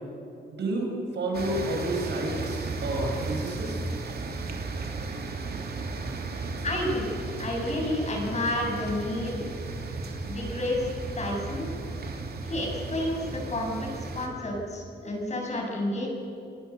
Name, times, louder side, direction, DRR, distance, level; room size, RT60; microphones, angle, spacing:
voice 1, 0.5-3.8, right 1 dB, 80° right, 1 dB, 6.1 m, -30 dB
sound 1, 1.3-14.3, right 3 dB, 60° right, 3.0 m, -35 dB
voice 2, 6.6-7.1 7.4-9.5 10.3-10.9 11.1-11.7 12.4-16.1, left 1 dB, 40° left, 0 dB, 7.1 m, -30 dB
28.5 x 19.5 x 7.0 m, 2.7 s
cardioid pair, 110°, 18 cm